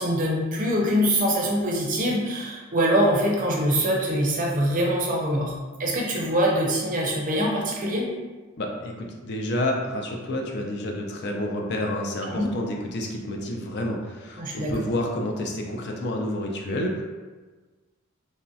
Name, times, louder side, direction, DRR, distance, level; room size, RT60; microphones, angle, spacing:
voice 1, 0.0-8.1 12.2-12.5 14.4-14.8, equal, 40° right, -1 dB, 0.5 m, -24 dB
voice 2, 8.6-17.0, left 1 dB, 50° left, 1 dB, 0.4 m, -29 dB
3.1 x 2.7 x 2.2 m, 1.3 s
head